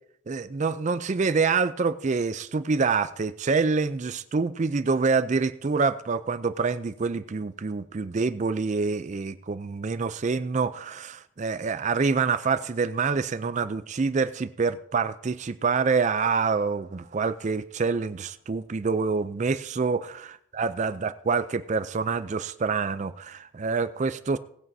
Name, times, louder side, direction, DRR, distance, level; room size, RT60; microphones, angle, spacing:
voice 1, 0.3-24.4, right 4 dB, 35° right, 0.4 m, -26 dB
18.5 x 9.1 x 2.7 m
head